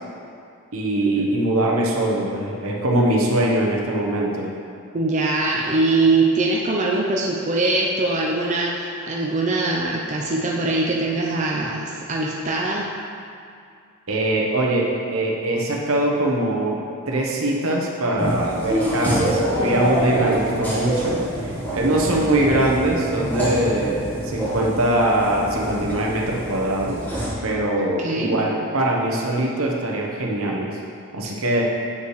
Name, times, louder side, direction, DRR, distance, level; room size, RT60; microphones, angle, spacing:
voice 1, 0.7-4.5 14.1-16.8 17.1-27.0 27.4-30.8 31.1-31.7, right 1 dB, 70° right, -2 dB, 0.9 m, -22 dB
voice 2, 4.9-12.9 28.0-28.4 31.2-31.3, right 2 dB, 35° right, -2 dB, 0.5 m, -22 dB
sound 1, 18.2-27.3, right 1 dB, 10° left, 1.4 m, -26 dB
8.2 x 5.6 x 3.2 m, 2.4 s
head